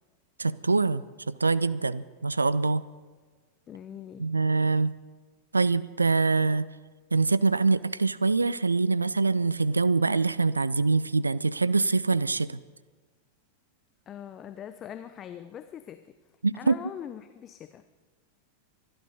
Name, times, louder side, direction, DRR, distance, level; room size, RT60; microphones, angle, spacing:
voice 1, 0.4-2.8 4.2-4.9 5.5-6.7 7.1-12.6 16.4-16.8, right 3 dB, 80° right, 19 dB, 0.4 m, -24 dB
voice 2, 3.7-4.3 14.1-16.0 16.5-17.8, left 9 dB, 30° left, 10 dB, 0.7 m, -42 dB
24.5 x 11.0 x 5.3 m, 1.4 s
figure-of-eight pair, 90°, 0 cm